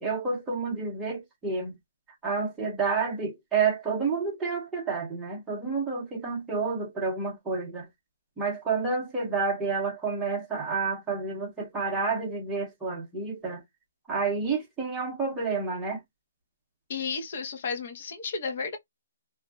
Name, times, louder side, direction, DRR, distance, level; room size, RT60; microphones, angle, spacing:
voice 1, 0.0-1.7 2.2-7.9 8.4-13.6 14.1-16.0, right 4 dB, 5° right, 0.7 m, -29 dB
voice 2, 16.9-18.8, left 5 dB, 45° left, 0.8 m, -33 dB
2.5 x 2.2 x 2.3 m
hypercardioid pair, 165°, 0 cm